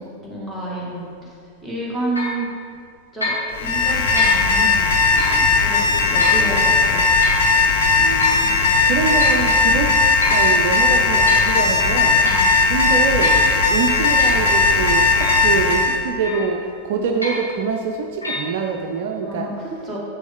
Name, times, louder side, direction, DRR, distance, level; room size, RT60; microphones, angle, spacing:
voice 1, 0.0-1.3 1.6-2.5 3.1-7.1 8.4-8.8 12.2-12.6 19.2-20.0, right 1 dB, ahead, -6 dB, 1.9 m, -30 dB
sound 1, 2.2-2.4 3.2-3.5 4.2-4.4 5.2-5.4 6.2-6.4 7.2-7.5 8.2-8.5 9.2-9.5 10.2-10.5 11.0-11.5 12.2-12.5 13.2-13.5 14.2-14.4 15.2-15.5 16.2-16.6 17.2-17.5 18.2-18.4, left 1 dB, 85° left, 1.4 m, -25 dB
Alarm, 3.5-16.0, left 3 dB, 55° left, 0.7 m, -17 dB
voice 2, 7.9-9.9 10.3-12.2 12.7-16.6 16.8-19.5, right 5 dB, 50° right, 3 dB, 0.5 m, -25 dB
7.7 x 6.0 x 3.7 m, 2.2 s
figure-of-eight pair, 90°, 0 cm